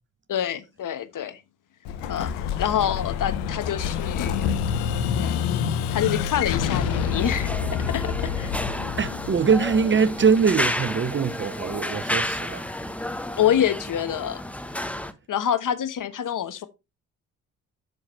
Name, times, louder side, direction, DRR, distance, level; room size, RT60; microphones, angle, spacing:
voice 1, 0.3-1.4 2.1-4.5 5.1-5.4 5.9-7.5 7.9-8.6 13.4-14.4 15.3-16.7, left 10 dB, 50° left, 1.2 m, -26 dB
Explosion, 1.9-10.5, left 7 dB, 80° left, 1.0 m, -27 dB
sound 1, 6.7-15.1, left 1 dB, 5° left, 1.0 m, -31 dB
voice 2, 9.0-12.6, right 6 dB, 30° right, 0.7 m, -22 dB
7.7 x 6.4 x 3.1 m
hypercardioid pair, 55°, 41 cm